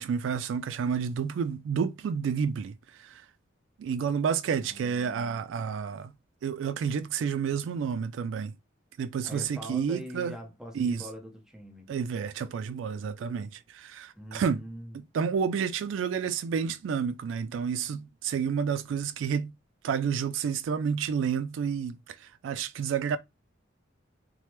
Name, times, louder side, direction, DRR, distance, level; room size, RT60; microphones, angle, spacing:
voice 1, 0.0-3.2 3.8-6.1 6.4-8.5 9.0-10.4 10.7-11.0 11.9-14.6 15.1-19.5 19.8-23.2, right 6 dB, 75° right, 0.3 m, -30 dB
voice 2, 4.6-5.5 9.2-11.9 14.2-15.0, equal, 5° right, 0.8 m, -43 dB
3.3 x 2.1 x 2.9 m
head